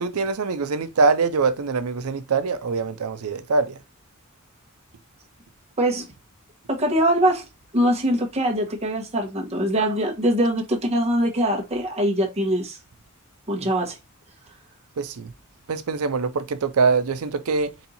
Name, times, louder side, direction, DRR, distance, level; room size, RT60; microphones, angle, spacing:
voice 1, 0.0-3.8 15.0-15.3 15.7-17.7, right 4 dB, 75° right, 0.5 m, -23 dB
voice 2, 6.7-7.4 7.7-12.8 13.5-14.0, equal, 30° right, 1.1 m, -22 dB
4.2 x 2.6 x 4.1 m
head